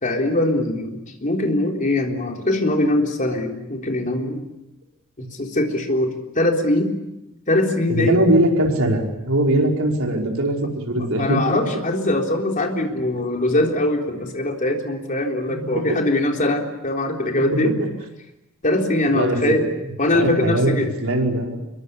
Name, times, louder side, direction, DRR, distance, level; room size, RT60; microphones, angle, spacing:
voice 1, 0.0-4.4 5.2-6.9 7.5-8.2 10.9-17.7 18.6-19.7 20.0-20.9, left 1 dB, 40° left, 2 dB, 3.7 m, -22 dB
voice 2, 7.9-11.4 15.6-16.0 17.4-17.9 19.1-19.7 20.1-20.7 21.0-21.6, right 1 dB, 70° right, 1 dB, 5.0 m, -21 dB
26.5 x 23.0 x 8.3 m, 0.91 s
head